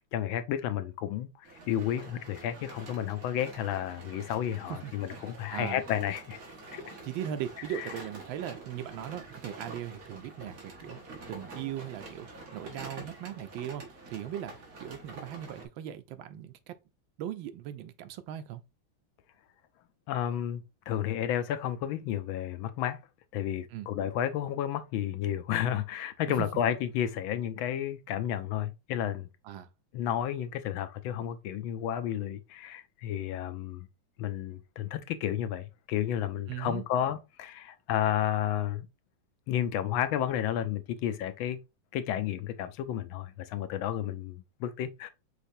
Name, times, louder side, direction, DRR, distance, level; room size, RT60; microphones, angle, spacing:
voice 1, 0.1-6.4 6.7-6.8 20.1-23.0 23.3-29.3 29.9-33.9 34.2-38.9 39.5-41.6 41.9-45.1, left 10 dB, 85° left, 1.4 m, -32 dB
sound 1, 1.4-15.7, right 2 dB, 45° right, 1.8 m, -47 dB
voice 2, 4.7-5.8 7.0-16.7 17.2-18.6 23.7-23.9 26.4-26.5 29.4-29.7 36.5-36.8, right 11 dB, 80° right, 1.4 m, -39 dB
5.7 x 3.3 x 2.6 m
omnidirectional pair, 2.1 m